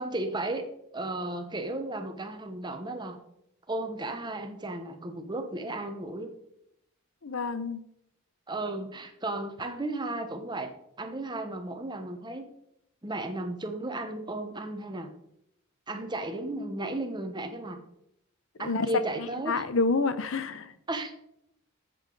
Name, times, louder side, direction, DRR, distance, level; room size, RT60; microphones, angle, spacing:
voice 1, 0.0-3.2 3.7-6.3 8.5-12.4 13.0-15.1 15.9-17.8 18.6-19.6 20.9-21.1, right 2 dB, 20° right, 7 dB, 1.0 m, -34 dB
voice 2, 7.2-7.8 18.6-18.9 19.2-20.7, left 3 dB, 60° left, 13 dB, 0.7 m, -28 dB
13.5 x 7.6 x 3.9 m, 0.77 s
head